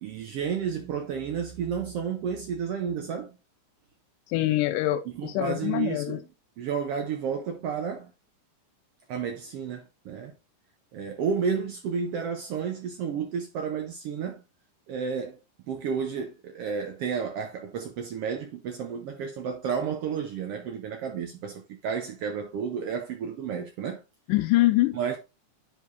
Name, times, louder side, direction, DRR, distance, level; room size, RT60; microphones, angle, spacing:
voice 1, 0.0-3.4 5.1-6.2 6.6-8.1 9.1-10.3 10.9-14.4 14.9-15.4 15.7-24.0 24.9-25.2, right 6 dB, 85° right, 1.3 m, -31 dB
voice 2, 4.3-6.2 24.3-25.0, left 17 dB, 85° left, 2.3 m, -24 dB
10.0 x 4.7 x 2.6 m
omnidirectional pair, 3.7 m